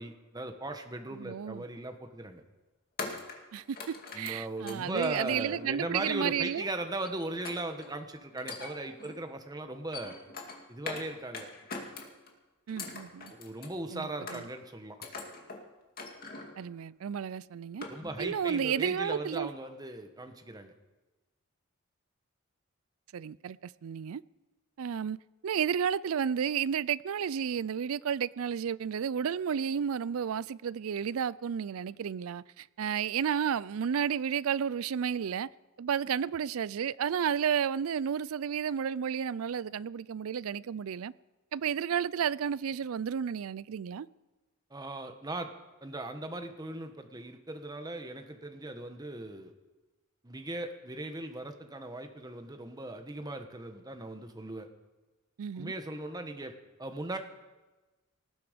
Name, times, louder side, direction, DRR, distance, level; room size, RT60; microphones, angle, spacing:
voice 1, 0.0-2.4 4.1-10.2 10.7-11.5 13.3-15.0 17.9-20.7 44.7-45.5 45.8-49.5 50.2-54.7 55.5-56.5 56.8-57.2, right 2 dB, 20° right, 1.1 m, -38 dB
voice 2, 1.1-1.6 3.5-6.6 12.7-13.3 13.9-14.4 16.6-17.8 18.2-19.5 23.1-24.2 24.8-25.2 25.4-35.5 35.8-41.1 41.5-44.1 55.4-55.7, right 8 dB, 70° right, 0.4 m, -32 dB
sound 1, 1.6-1.8 3.0-5.9 7.0-7.9 8.3-9.2 9.7-11.1 11.3-12.3 12.7-13.8 14.3-14.7 15.0-15.6 16.0-16.6 17.1-17.2 17.5-18.3 18.5-18.8 19.2-19.3, left 3 dB, 45° left, 2.3 m, -43 dB
19.0 x 14.0 x 5.1 m
head